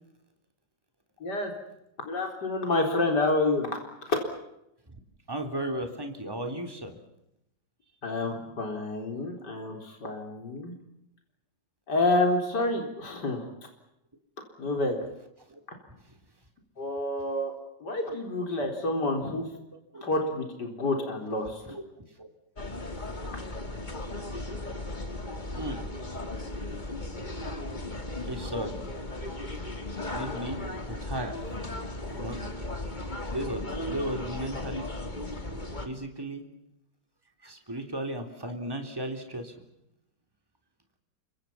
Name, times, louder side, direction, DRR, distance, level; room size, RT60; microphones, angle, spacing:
voice 1, 1.2-1.5 2.0-3.8 4.1-4.2 8.0-10.7 11.9-13.5 14.6-15.0 16.8-17.5 17.8-19.4 20.0-21.6, left 2 dB, 65° left, 3 dB, 4.6 m, -28 dB
voice 2, 5.3-6.9 8.2-8.5 15.5-15.6 16.1-16.2 19.9-20.0 21.7-21.8 22.2-22.3 25.5-25.8 28.2-28.7 30.1-30.6 30.9-31.6 32.1-32.4 33.3-34.9 35.8-36.4 37.4-39.5, right 1 dB, 10° right, 5 dB, 3.6 m, -35 dB
sound 1, 22.6-35.9, left 2 dB, 25° left, 2.8 m, -36 dB
30.0 x 25.5 x 5.8 m, 0.83 s
omnidirectional pair, 1.9 m